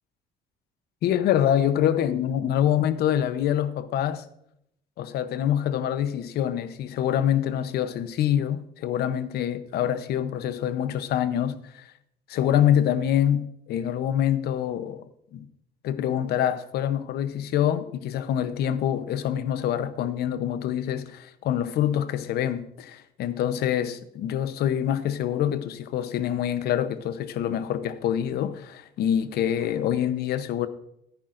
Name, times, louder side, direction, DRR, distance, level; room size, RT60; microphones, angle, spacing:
voice 1, 1.0-4.2 5.0-11.9 12.3-15.0 15.3-15.5 15.8-30.7, left 10 dB, 70° left, 0.8 m, -25 dB
14.0 x 10.0 x 2.6 m
cardioid pair, 110°, 17 cm